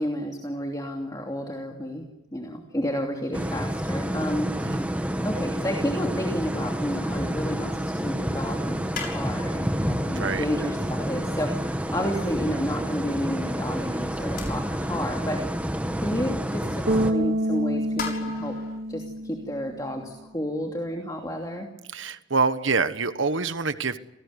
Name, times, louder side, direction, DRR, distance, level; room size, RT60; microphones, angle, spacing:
voice 1, 0.0-2.0 2.3-4.5 5.0-15.4 16.0-18.6 18.9-21.7, equal, 20° left, 1 dB, 2.9 m, -31 dB
sound 1, 3.3-17.1, equal, 5° right, 1.5 m, -29 dB
sound 2, 8.9-10.6 11.2-11.3 12.3-12.4 13.4-13.5 14.4-15.0 15.5-15.6 16.6-16.7 17.7-18.8, left 5 dB, 45° left, 6.9 m, -38 dB
Bass guitar, 16.9-20.0, right 1 dB, 45° right, 1.1 m, -27 dB
voice 2, 21.9-24.0, right 4 dB, 75° right, 12 dB, 1.3 m, -26 dB
28.0 x 19.0 x 9.8 m, 0.94 s
head